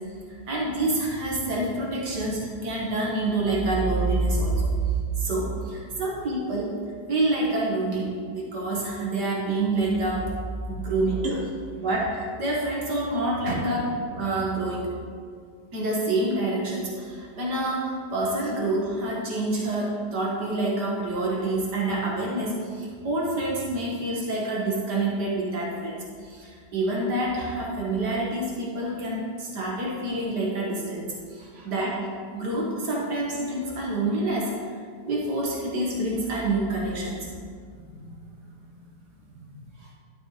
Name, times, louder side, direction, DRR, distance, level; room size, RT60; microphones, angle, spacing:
voice 1, 0.3-6.7 7.1-10.3 10.7-11.2 11.8-13.8 14.1-14.9 15.7-32.0 32.3-34.5 35.1-37.3, right 2 dB, 75° right, -3 dB, 2.0 m, -27 dB
voice 2, 31.4-31.7 37.6-39.9, right 3 dB, 45° right, -4 dB, 1.8 m, -39 dB
12.0 x 6.3 x 3.1 m, 2.1 s
omnidirectional pair, 1.8 m